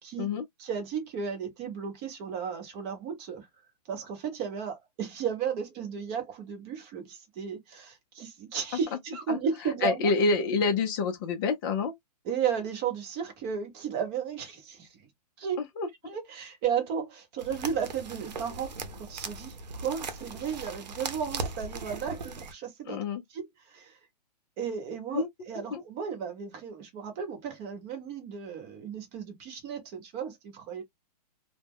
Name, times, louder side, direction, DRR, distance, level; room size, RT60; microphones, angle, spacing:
voice 1, 0.6-3.5 3.9-10.1 12.2-14.9 15.4-15.6 16.0-23.0 23.3-24.0 24.6-30.8, right 7 dB, 30° right, 0.9 m, -34 dB
voice 2, 9.8-11.9 15.6-15.9 22.9-23.2 25.1-25.3 25.7-25.8, left 4 dB, 30° left, 0.5 m, -27 dB
sound 1, 17.4-22.5, right 4 dB, 90° right, 0.7 m, -38 dB
2.2 x 2.1 x 3.4 m
hypercardioid pair, 145°, 21 cm